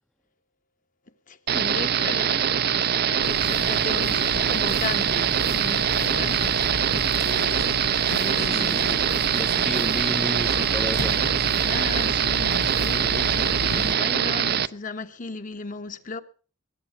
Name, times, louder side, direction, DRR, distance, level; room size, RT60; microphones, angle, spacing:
voice 1, 1.3-6.5 8.2-9.2 11.6-16.2, left 3 dB, 40° left, 1.3 m, -36 dB
sound 1, 1.5-14.7, right 8 dB, 50° right, 0.6 m, -23 dB
sound 2, 3.2-13.9, left 2 dB, 85° left, 0.9 m, -33 dB
voice 2, 8.4-11.2, equal, 5° left, 0.7 m, -33 dB
21.0 x 9.3 x 5.8 m
head